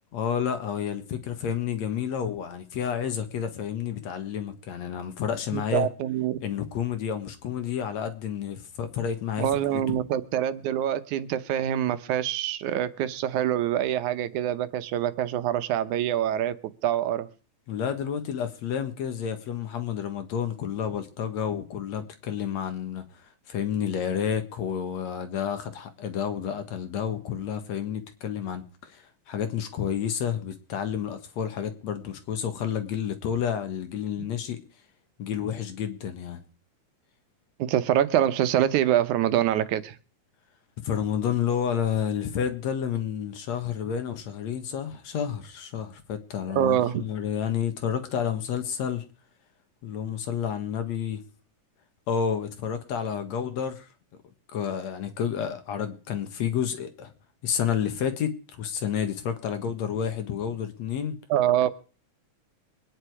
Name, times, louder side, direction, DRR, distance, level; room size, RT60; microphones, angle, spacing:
voice 1, 0.1-5.9 6.4-9.5 9.7-10.0 17.7-23.0 23.5-34.6 35.2-36.4 40.8-49.0 49.8-51.2 52.1-53.9 54.5-57.1 57.4-61.2, left 8 dB, 65° left, 2.6 m, -30 dB
voice 2, 5.5-6.4 9.4-16.6 16.8-17.3 37.6-40.0 46.5-47.1 61.3-61.8, right 11 dB, 80° right, 2.3 m, -25 dB
23.0 x 10.0 x 4.8 m
omnidirectional pair, 3.5 m